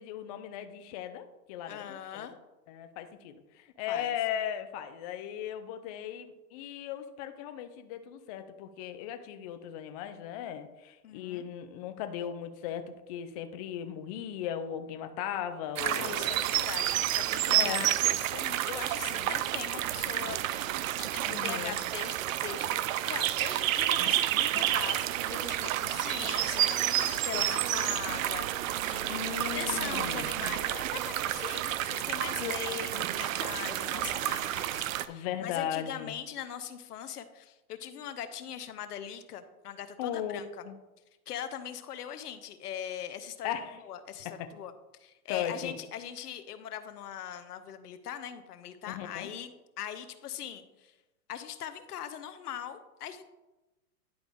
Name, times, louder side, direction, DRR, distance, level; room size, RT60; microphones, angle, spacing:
voice 1, 0.0-2.3 2.7-16.3 17.5-17.9 21.2-21.8 29.1-30.3 35.1-36.1 40.0-40.8 43.4-43.8 44.2-44.5 45.3-45.7 48.9-49.3, left 10 dB, 30° left, 8 dB, 0.3 m, -37 dB
voice 2, 1.7-2.3 3.9-4.1 11.0-11.5 15.8-40.7 41.3-44.7 45.0-50.9 51.3-53.3, left 9 dB, 80° left, 11 dB, 1.0 m, -41 dB
sound 1, 15.8-35.1, right 13 dB, 60° right, 0.5 m, -30 dB
10.5 x 5.0 x 3.5 m, 1.0 s
hypercardioid pair, 125°, 46 cm